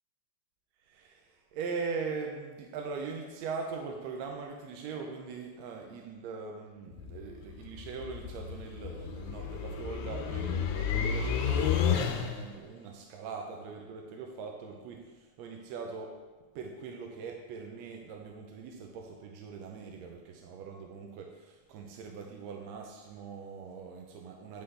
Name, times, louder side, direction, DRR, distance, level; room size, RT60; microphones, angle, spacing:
voice 1, 0.8-16.2 16.5-24.6, right 5 dB, 75° right, 2 dB, 1.6 m, -41 dB
sound 1, 6.9-12.6, left 7 dB, 80° left, 2.0 m, -32 dB
9.4 x 4.0 x 3.3 m, 1.3 s
omnidirectional pair, 3.4 m